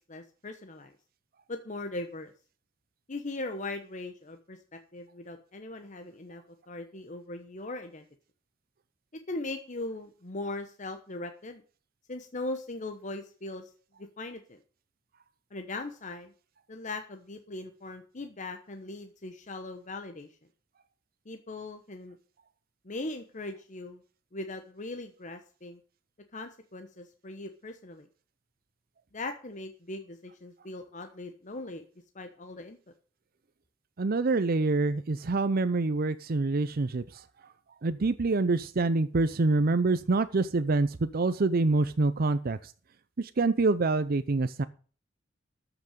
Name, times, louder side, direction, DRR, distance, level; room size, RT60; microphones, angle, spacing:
voice 1, 0.1-0.9 1.5-2.3 3.1-8.0 9.3-11.6 12.1-13.7 14.2-14.6 15.5-16.3 16.7-20.3 21.3-22.2 22.8-24.0 24.3-25.8 26.3-28.1 29.1-31.8 32.1-32.8, left 2 dB, 40° left, 6 dB, 1.0 m, -39 dB
voice 2, 34.0-37.2 37.8-42.7 43.2-44.6, right 3 dB, 50° right, 12 dB, 0.6 m, -26 dB
13.5 x 6.0 x 6.7 m, 0.40 s
head